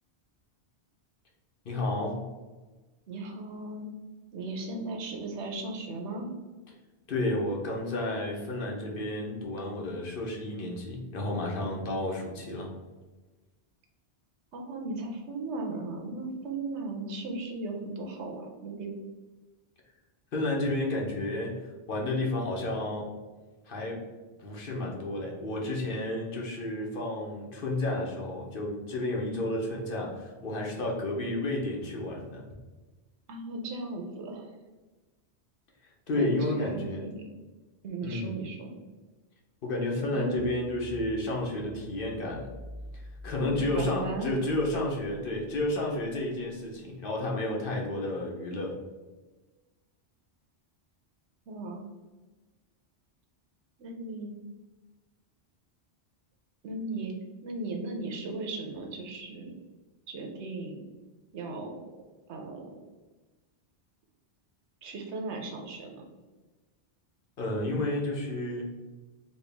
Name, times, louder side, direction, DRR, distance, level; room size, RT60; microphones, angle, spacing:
voice 1, 1.6-2.2 7.1-12.7 20.3-23.1 23.7-24.0 24.4-32.4 36.1-37.0 38.0-38.3 39.6-42.5 43.2-48.7 67.4-68.7, left 1 dB, 55° left, -1 dB, 0.9 m, -31 dB
voice 2, 3.1-3.9 4.3-6.3 14.5-18.9 33.3-34.5 36.1-37.2 37.8-38.7 39.9-40.4 43.5-44.3 51.5-51.8 53.8-54.3 56.6-57.2 57.4-59.5 60.1-60.9 61.3-61.9 62.3-62.8 64.8-66.0, right 2 dB, 85° right, 2 dB, 1.0 m, -37 dB
sound 1, 40.4-46.6, left 1 dB, 65° right, 0.8 m, -47 dB
4.3 x 2.3 x 3.4 m, 1.2 s
omnidirectional pair, 1.1 m